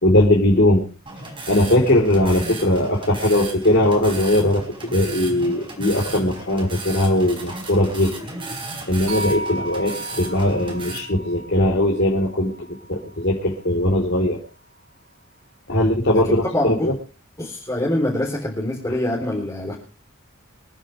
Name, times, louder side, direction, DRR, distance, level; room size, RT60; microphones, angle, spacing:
voice 1, 0.0-0.8 1.5-4.6 4.9-8.3 8.9-12.5 12.9-14.4 15.7-16.9, left 1 dB, 55° left, -2 dB, 4.1 m, -19 dB
sound 1, 1.1-11.0, right 2 dB, 25° right, 4.3 m, -35 dB
sound 2, 9.1-13.3, right 1 dB, 75° right, 4.6 m, -35 dB
voice 2, 16.2-16.9 17.4-19.7, left 1 dB, 15° left, -2 dB, 3.9 m, -24 dB
26.5 x 9.8 x 3.4 m, 0.37 s
head